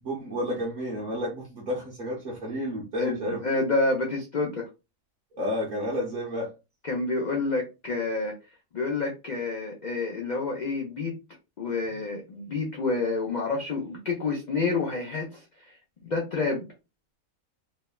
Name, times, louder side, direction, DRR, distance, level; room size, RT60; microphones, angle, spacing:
voice 1, 0.0-3.4 5.3-6.5, equal, 40° right, -5 dB, 0.7 m, -31 dB
voice 2, 3.0-4.7 6.8-8.3 8.7-11.1 11.6-16.6, left 3 dB, 85° left, 0 dB, 0.4 m, -29 dB
3.1 x 2.0 x 2.2 m, 0.28 s
omnidirectional pair, 1.5 m